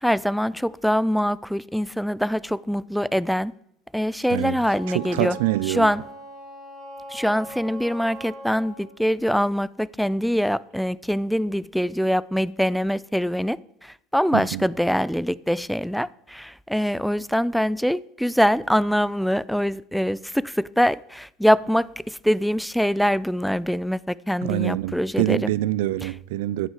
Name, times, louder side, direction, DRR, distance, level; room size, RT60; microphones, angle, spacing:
voice 1, 0.0-3.5 3.9-5.4 5.7-6.0 7.1-25.5, equal, ahead, 0.4 m, -24 dB
voice 2, 4.3-5.9 14.3-14.7 24.4-26.7, right 15 dB, 85° right, 0.5 m, -25 dB
Wind instrument woodwind instrument, 4.6-8.9, right 1 dB, 25° right, 6.4 m, -40 dB
15.0 x 10.0 x 4.8 m
supercardioid pair, 135°, 0 cm